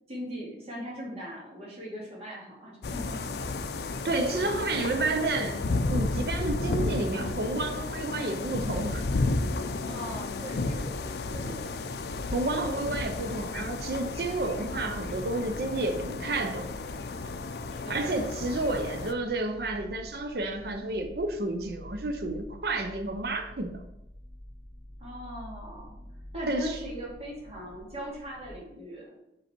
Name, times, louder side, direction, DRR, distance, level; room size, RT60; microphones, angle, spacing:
voice 1, 0.1-3.2 9.8-11.6 17.7-18.1 25.0-25.9 26.3-29.1, equal, 35° right, -4 dB, 2.2 m, -40 dB
sound 1, 2.8-19.1, left 3 dB, 65° left, 0.5 m, -33 dB
voice 2, 4.0-5.6 5.9-9.1 12.3-16.7 17.9-23.8 26.5-26.8, right 2 dB, 60° right, 6 dB, 0.6 m, -30 dB
sound 2, 12.1-28.5, equal, 45° left, 0.9 m, -47 dB
5.5 x 5.3 x 4.4 m, 0.86 s
head